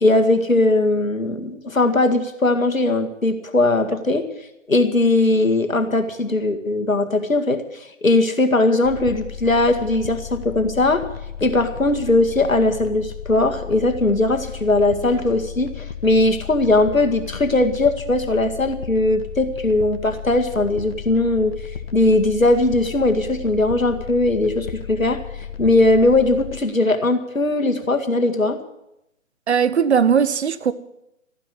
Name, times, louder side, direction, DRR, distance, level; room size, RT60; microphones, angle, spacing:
voice 1, 0.0-4.3 4.7-7.6 8.0-11.0 11.4-21.5 21.9-25.2 25.6-28.6, left 2 dB, 85° left, 2.1 m, -19 dB
sound 1, 8.8-26.6, left 8 dB, 50° left, 1.6 m, -34 dB
voice 2, 29.5-30.7, right 7 dB, 55° right, 1.1 m, -18 dB
14.0 x 10.0 x 9.6 m
figure-of-eight pair, 140°, 39 cm